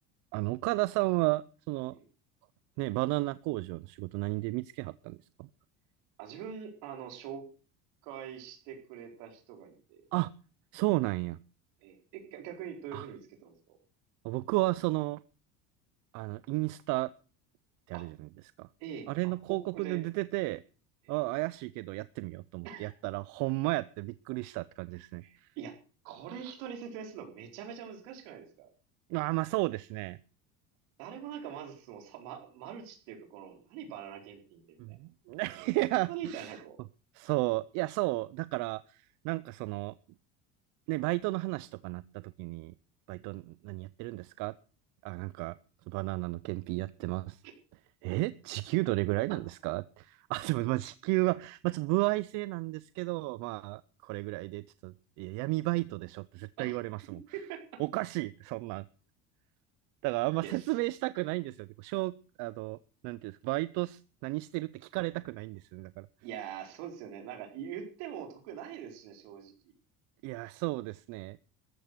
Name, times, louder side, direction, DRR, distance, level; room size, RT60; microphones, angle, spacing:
voice 1, 0.3-1.9 2.8-5.5 10.1-10.3 10.7-11.4 12.9-13.1 14.2-15.2 16.1-17.1 17.9-18.1 18.6-18.7 19.1-20.6 21.1-25.5 29.1-30.2 34.8-36.5 37.1-39.9 40.9-42.7 43.1-44.5 45.0-45.5 45.9-47.4 48.0-57.2 57.8-58.8 60.0-62.8 63.0-66.1 70.2-71.5, right 22 dB, 65° right, 17 dB, 0.6 m, -33 dB
voice 2, 6.2-7.5 8.0-10.0 11.8-13.8 17.9-18.1 18.8-20.0 21.0-21.1 22.6-22.9 25.2-25.8 26.0-28.7 31.0-35.0 36.1-36.8 43.1-43.2 56.6-56.8 57.3-57.7 60.4-60.7 66.2-69.5, right 8 dB, 85° right, 3 dB, 4.3 m, -43 dB
14.5 x 10.5 x 6.8 m, 0.38 s
cardioid pair, 165°, 33 cm